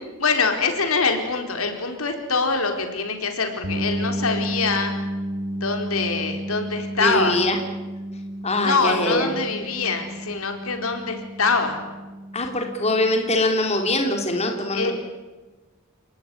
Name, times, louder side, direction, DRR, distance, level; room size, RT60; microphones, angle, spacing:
voice 1, 0.2-4.9 5.6-7.4 8.6-11.8 14.7-14.9, left 4 dB, 85° left, 5 dB, 4.5 m, -24 dB
sound 1, 3.6-13.3, equal, 85° right, 6.3 m, -32 dB
voice 2, 7.0-7.6 8.4-9.3 12.3-14.9, left 1 dB, 30° left, 3 dB, 3.1 m, -23 dB
29.5 x 19.0 x 9.9 m, 1.2 s
head